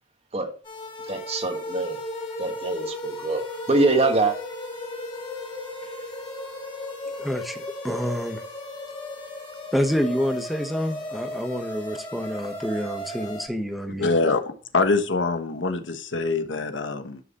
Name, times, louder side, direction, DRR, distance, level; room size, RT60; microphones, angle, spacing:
sound 1, 0.6-13.5, left 1 dB, 25° left, 3.4 m, -35 dB
voice 1, 1.1-2.0 2.4-4.4, right 3 dB, 35° right, 1.4 m, -24 dB
voice 2, 7.2-8.4 9.7-14.1, equal, ahead, 1.0 m, -28 dB
voice 3, 14.0-14.4 14.7-17.2, left 3 dB, 80° left, 1.2 m, -24 dB
11.0 x 6.3 x 3.0 m
head